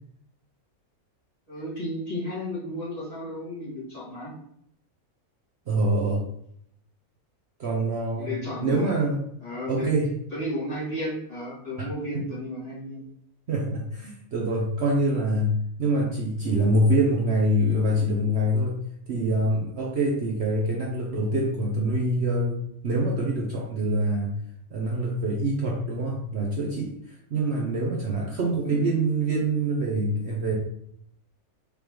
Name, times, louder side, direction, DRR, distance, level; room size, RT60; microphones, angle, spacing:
voice 1, 1.5-4.3 8.2-8.9 9.4-9.9 10.3-13.0 28.7-28.8, left 1 dB, 25° left, -9 dB, 2.1 m, -33 dB
voice 2, 5.7-6.3 7.6-9.3 9.7-10.1 11.8-11.9 12.1-12.2 13.5-24.4 24.7-30.6, right 1 dB, 55° right, -2 dB, 0.9 m, -25 dB
5.3 x 3.4 x 3.0 m, 0.71 s
omnidirectional pair, 1.5 m